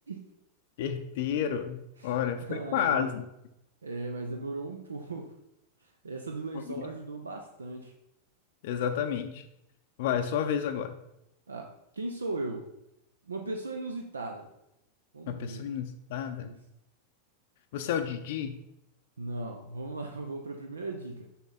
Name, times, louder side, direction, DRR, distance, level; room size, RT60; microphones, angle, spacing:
voice 1, 0.8-3.2 8.6-9.4 10.0-10.9 15.3-16.5 17.7-18.6, left 8 dB, 50° left, 7 dB, 0.5 m, -30 dB
voice 2, 2.0-3.2 3.8-5.3 6.0-7.9 11.5-12.7 13.3-14.5 15.1-15.7 16.4-16.6 19.2-21.3, right 2 dB, 75° right, 3 dB, 0.6 m, -37 dB
6.8 x 5.9 x 3.9 m, 0.83 s
figure-of-eight pair, 90°, 0 cm